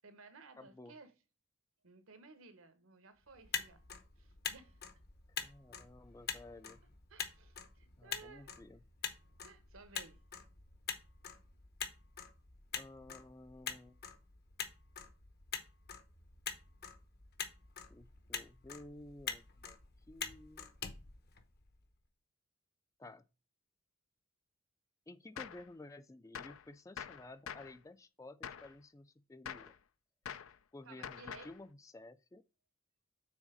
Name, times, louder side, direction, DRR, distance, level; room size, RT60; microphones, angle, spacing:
voice 1, 0.0-1.1 1.8-3.8 4.2-4.8 7.1-8.6 9.4-10.2 30.8-31.5, right 4 dB, 80° right, 1.2 m, -57 dB
voice 2, 0.6-1.0 5.4-6.8 8.0-8.8 12.7-14.0 17.9-19.8 20.1-20.7 23.0-23.3 25.1-29.7 30.7-32.4, left 2 dB, 15° left, 0.3 m, -54 dB
Motor vehicle (road), 3.3-21.9, left 7 dB, 50° left, 0.9 m, -45 dB
Gunshot gunfire, 25.4-25.7 26.3-26.6 27.0-27.8 28.4-28.7 29.4-29.8 30.3-30.6 31.0-31.6, left 8 dB, 80° left, 0.5 m, -46 dB
6.3 x 4.0 x 5.1 m
head